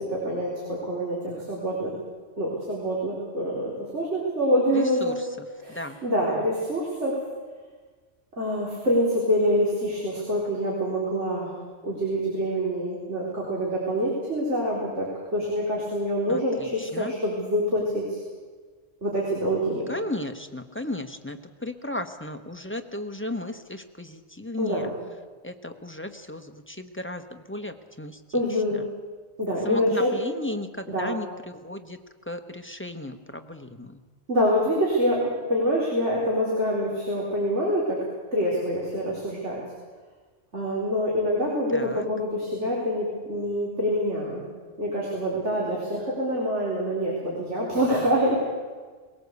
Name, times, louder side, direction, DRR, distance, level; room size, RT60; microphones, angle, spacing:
voice 1, 0.0-1.9 2.4-5.2 5.6-7.1 8.4-11.5 11.8-15.1 15.3-18.2 19.0-19.8 24.6-24.9 28.3-28.9 29.4-30.1 30.9-31.1 34.3-38.0 38.3-39.6 40.5-44.4 44.8-48.4, equal, 70° right, -5 dB, 4.6 m, -26 dB
voice 2, 4.8-5.1 5.7-6.0 16.3-17.1 19.9-24.9 25.4-28.2 29.6-31.3 31.6-32.0 32.3-34.0 41.7-42.0, left 1 dB, 10° left, 6 dB, 1.0 m, -35 dB
21.5 x 18.0 x 8.2 m, 1.4 s
omnidirectional pair, 1.2 m